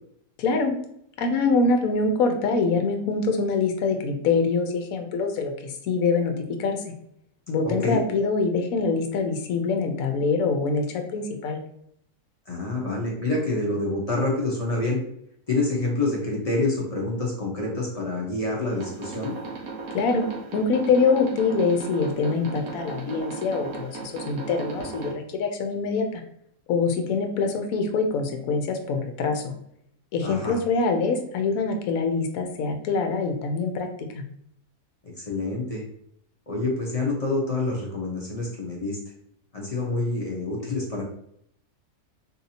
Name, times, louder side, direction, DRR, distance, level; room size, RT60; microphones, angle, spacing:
voice 1, 0.4-0.7 1.2-6.3 6.6-6.8 7.5-11.6 19.9-20.3 20.5-26.2 26.7-29.5 30.1-33.9, left 4 dB, 70° left, 4 dB, 1.0 m, -24 dB
voice 2, 7.6-8.0 12.5-15.0 15.5-19.3 30.2-30.5 35.3-35.8 36.5-39.0 39.5-41.0, left 2 dB, 40° left, -3 dB, 0.6 m, -27 dB
sound 1, 18.6-25.1, right 3 dB, 70° right, 1.3 m, -37 dB
3.8 x 2.7 x 2.8 m, 0.72 s
omnidirectional pair, 1.6 m